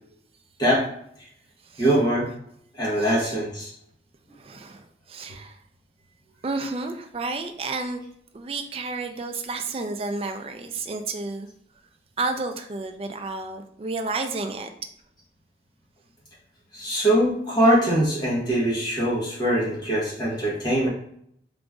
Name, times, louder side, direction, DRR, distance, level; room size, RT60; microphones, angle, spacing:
voice 1, 1.8-2.3 2.8-3.7 16.7-20.9, right 1 dB, 25° left, -6 dB, 1.1 m, -22 dB
voice 2, 3.0-3.3 4.4-5.6 6.4-8.1 8.3-11.5 12.2-14.7, right 3 dB, 30° right, 6 dB, 0.3 m, -31 dB
3.9 x 2.5 x 3.5 m, 0.70 s
head